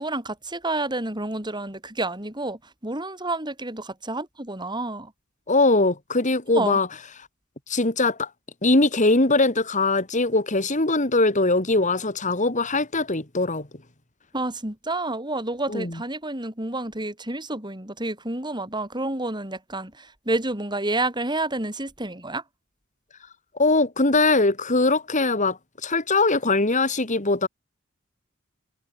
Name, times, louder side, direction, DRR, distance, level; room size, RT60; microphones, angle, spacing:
voice 1, 0.0-5.1 6.6-6.8 14.3-22.4, right 2 dB, 20° right, 7.0 m, -29 dB
voice 2, 5.5-6.9 7.7-8.3 8.6-13.7 15.7-16.0 23.5-27.5, left 2 dB, 35° left, 2.8 m, -21 dB
head